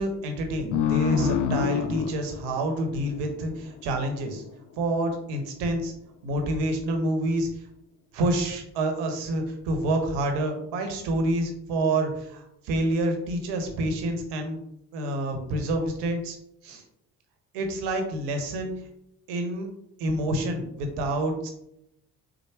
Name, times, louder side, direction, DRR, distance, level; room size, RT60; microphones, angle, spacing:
voice 1, 0.0-4.4 4.8-5.9 6.2-7.5 8.1-14.6 14.9-16.4 16.6-16.8 17.5-18.7 19.3-19.7 20.0-21.5, right 1 dB, 80° right, 5 dB, 1.1 m, -28 dB
sound 1, 0.7-3.9, left 7 dB, 75° left, 0.5 m, -27 dB
4.5 x 2.2 x 4.7 m, 0.77 s
hypercardioid pair, 55°, 41 cm